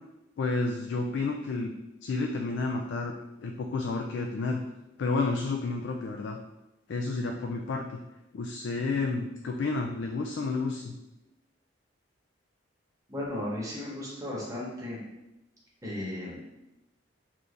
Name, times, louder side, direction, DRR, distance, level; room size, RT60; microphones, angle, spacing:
voice 1, 0.4-1.7 2.0-3.1 3.4-4.6 5.0-6.4 6.9-8.0 8.3-10.9, left 3 dB, 70° left, 2 dB, 0.3 m, -30 dB
voice 2, 13.1-15.0 15.8-16.4, left 1 dB, 15° right, -5 dB, 1.1 m, -35 dB
4.4 x 2.6 x 3.2 m, 0.94 s
head